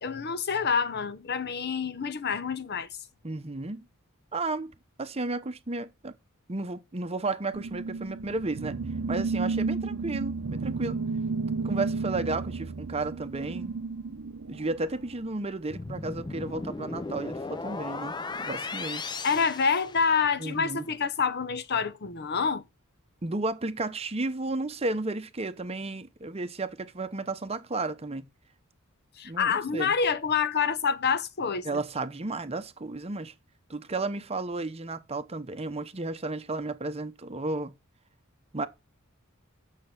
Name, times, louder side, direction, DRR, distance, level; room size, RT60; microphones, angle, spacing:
voice 1, 0.0-2.9 19.2-22.6 29.2-31.8, left 6 dB, 50° left, 0.8 m, -27 dB
voice 2, 3.2-3.8 4.3-4.7 5.0-6.1 6.5-8.8 9.1-11.0 11.6-13.7 14.5-19.0 20.4-20.9 23.2-28.3 29.2-29.9 31.6-33.3 33.7-37.7 38.5-38.7, right 2 dB, 30° right, 0.8 m, -33 dB
sound 1, 7.5-15.3, right 4 dB, 75° right, 0.7 m, -32 dB
sound 2, 15.7-20.5, left 3 dB, 20° left, 0.5 m, -36 dB
8.6 x 6.5 x 5.8 m
head